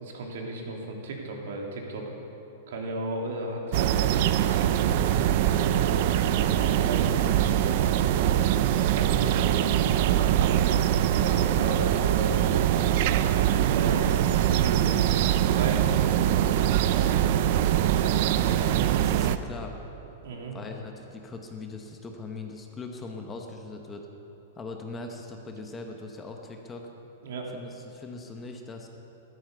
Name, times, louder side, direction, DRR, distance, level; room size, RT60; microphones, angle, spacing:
voice 1, 0.0-2.1 2.7-6.0 6.5-8.5 8.8-10.7 11.2-12.6 13.5-15.0 15.4-17.4 20.2-20.5 27.2-27.5, right 2 dB, 70° right, 0 dB, 3.0 m, -35 dB
sound 1, 3.7-19.4, right 11 dB, 45° right, 0.6 m, -23 dB
voice 2, 18.4-19.8 20.5-24.1 24.6-26.9 27.5-28.9, left 3 dB, 15° left, 3 dB, 1.1 m, -40 dB
14.5 x 13.0 x 6.9 m, 3.0 s
supercardioid pair, 165°, 0 cm